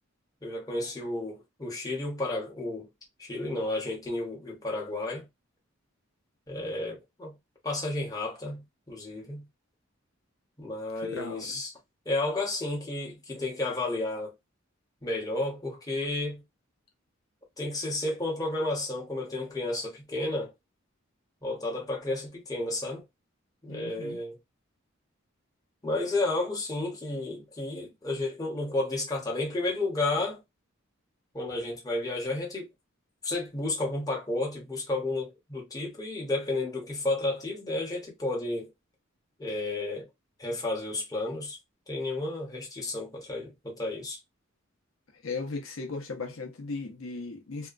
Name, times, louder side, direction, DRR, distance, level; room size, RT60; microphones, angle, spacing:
voice 1, 0.4-2.9 3.2-5.3 6.5-7.3 7.6-9.5 10.6-11.7 12.0-14.3 15.0-16.4 17.6-20.5 21.4-23.0 23.6-24.4 25.8-30.4 31.3-32.7 33.2-38.7 39.4-40.1 40.4-41.6 41.9-44.2, left 2 dB, 20° left, 1.0 m, -32 dB
voice 2, 11.0-11.6 23.7-24.2 45.2-47.7, left 3 dB, 85° left, 0.7 m, -37 dB
2.7 x 2.2 x 2.4 m
head